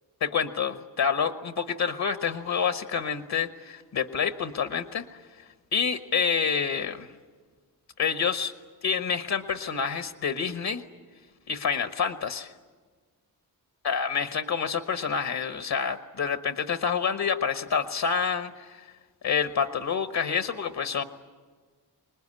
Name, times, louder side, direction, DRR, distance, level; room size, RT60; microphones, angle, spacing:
voice 1, 0.2-5.2 5.7-7.1 8.0-8.5 8.8-10.8 11.5-12.5 13.8-18.8 19.2-21.0, left 6 dB, 75° left, 8 dB, 1.2 m, -28 dB
26.0 x 20.5 x 9.7 m, 1.5 s
wide cardioid pair, 95°, 38 cm